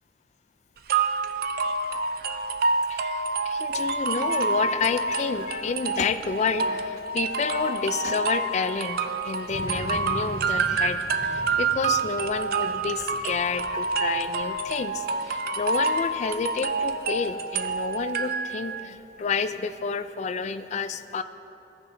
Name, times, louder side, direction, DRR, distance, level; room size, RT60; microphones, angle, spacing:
sound 1, 0.9-18.8, right 4 dB, 55° right, 0.4 m, -28 dB
voice 1, 2.9-21.2, left 5 dB, 40° left, 11 dB, 0.3 m, -30 dB
sound 2, 9.1-15.5 15.9-16.9, equal, 55° left, 1.5 m, -41 dB
16.0 x 5.5 x 3.4 m, 3.0 s
head